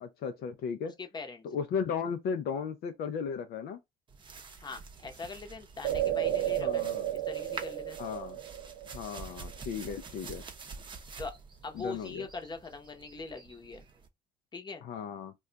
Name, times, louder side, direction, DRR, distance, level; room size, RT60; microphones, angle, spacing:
voice 1, 0.0-0.9 1.4-3.8 6.6-7.1 8.0-8.4 8.9-10.4 11.7-12.3 14.8-15.3, left 6 dB, 70° left, 0.5 m, -35 dB
voice 2, 0.8-1.4 4.6-6.9 7.1-8.0 11.2-11.4 11.6-13.8 14.5-14.9, left 4 dB, 25° left, 0.8 m, -42 dB
sound 1, 4.1-14.1, right 4 dB, 30° right, 0.6 m, -47 dB
sound 2, 5.8-9.5 9.9-10.0, right 11 dB, 80° right, 0.5 m, -32 dB
2.3 x 2.2 x 3.8 m
cardioid pair, 110°, 17 cm